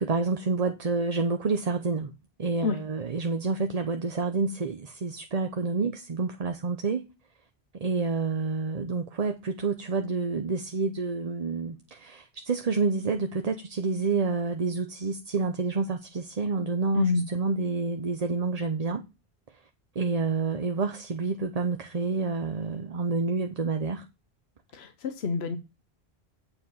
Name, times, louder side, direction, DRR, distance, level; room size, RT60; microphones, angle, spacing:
voice 1, 0.0-2.1 2.4-7.0 7.7-19.0 19.9-24.0, right 4 dB, 40° right, 0.8 m, -28 dB
voice 2, 24.7-25.6, left 5 dB, 80° left, 1.1 m, -27 dB
8.7 x 4.8 x 5.5 m
omnidirectional pair, 1.0 m